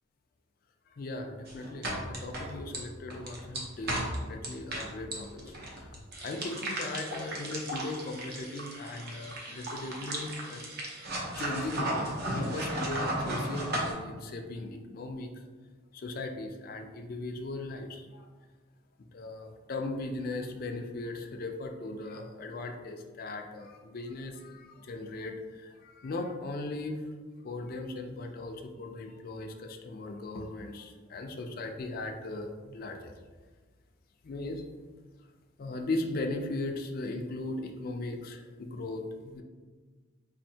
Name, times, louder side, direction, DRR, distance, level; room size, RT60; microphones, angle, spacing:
voice 1, 1.0-5.6 6.2-10.6 11.3-15.3 15.9-18.3 19.1-27.0 27.4-33.1 34.2-34.6 35.6-39.4, left 2 dB, 50° left, 4 dB, 0.4 m, -38 dB
sound 1, 1.5-13.9, right 1 dB, 50° right, 0.7 m, -35 dB
4.2 x 2.6 x 2.7 m, 1.4 s
head